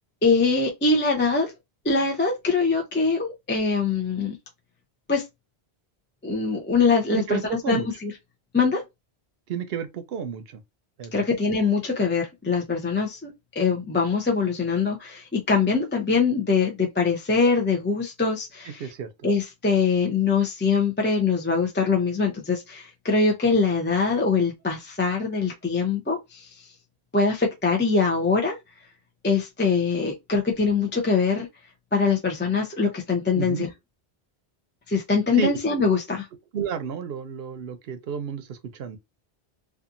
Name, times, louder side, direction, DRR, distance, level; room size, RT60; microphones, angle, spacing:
voice 1, 0.2-1.5 1.8-4.4 5.1-5.2 6.2-8.1 8.5-8.8 11.1-18.8 19.2-26.5 27.1-28.6 29.2-31.5 31.9-33.7 34.9-36.3, left 4 dB, 15° left, 0.4 m, -23 dB
voice 2, 7.1-7.9 9.5-10.6 11.0-11.2 18.8-19.1 33.3-33.7 35.3-35.6 36.5-39.0, right 7 dB, 70° right, 0.8 m, -31 dB
2.7 x 2.4 x 2.4 m
omnidirectional pair, 1.1 m